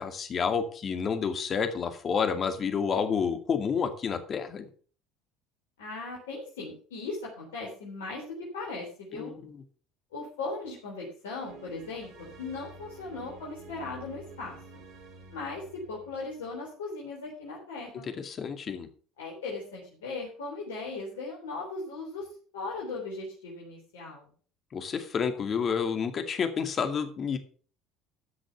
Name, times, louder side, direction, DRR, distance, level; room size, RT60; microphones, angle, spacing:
voice 1, 0.0-4.7 9.1-9.5 18.2-18.9 24.7-27.4, left 6 dB, 40° left, 8 dB, 2.3 m, -29 dB
voice 2, 5.8-9.3 10.1-14.6 15.3-18.1 19.2-22.3 22.5-24.3, left 3 dB, 80° left, -4 dB, 3.7 m, -38 dB
sound 1, 11.4-16.6, right 3 dB, 60° right, 2.9 m, -50 dB
13.5 x 6.4 x 5.9 m, 0.42 s
hypercardioid pair, 65°, 0 cm